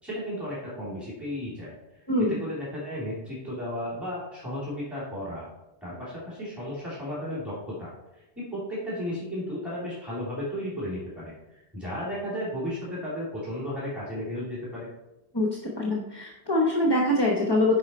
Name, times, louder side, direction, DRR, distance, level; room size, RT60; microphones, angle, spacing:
voice 1, 0.0-1.7 2.3-5.5 5.8-14.9, equal, ahead, -8 dB, 2.8 m, -34 dB
voice 2, 2.1-2.4 15.3-15.5 15.7-17.8, left 1 dB, 25° left, 0 dB, 1.0 m, -24 dB
9.5 x 5.5 x 4.3 m, 0.96 s
omnidirectional pair, 1.0 m